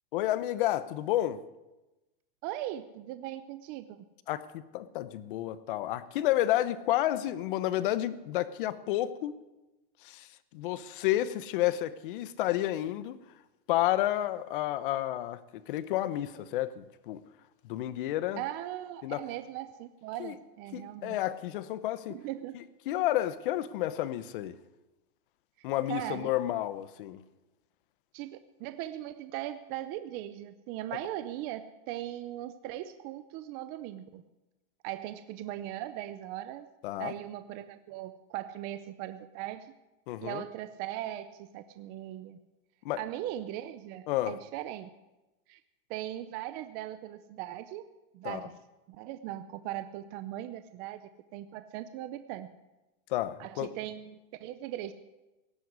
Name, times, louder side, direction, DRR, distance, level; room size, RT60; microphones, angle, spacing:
voice 1, 0.1-1.4 4.3-9.4 10.0-13.2 13.7-17.2 17.6-18.4 19.0-19.2 20.2-20.3 20.7-22.2 22.9-24.6 25.6-27.2 36.8-37.1 40.1-40.4 42.8-43.0 44.1-44.3 48.2-48.5 53.1-53.7, left 14 dB, 60° left, 14 dB, 1.0 m, -31 dB
voice 2, 2.4-4.0 18.4-21.2 22.1-22.6 25.9-26.3 28.1-34.2 34.8-36.7 37.0-39.7 40.2-42.4 43.0-44.9 45.5-45.6 45.9-47.9 48.1-48.5 48.9-51.0 51.3-52.5 53.4-54.9, right 13 dB, 30° right, 11 dB, 0.6 m, -39 dB
17.5 x 7.8 x 9.6 m, 1.0 s
supercardioid pair, 165°, 30 cm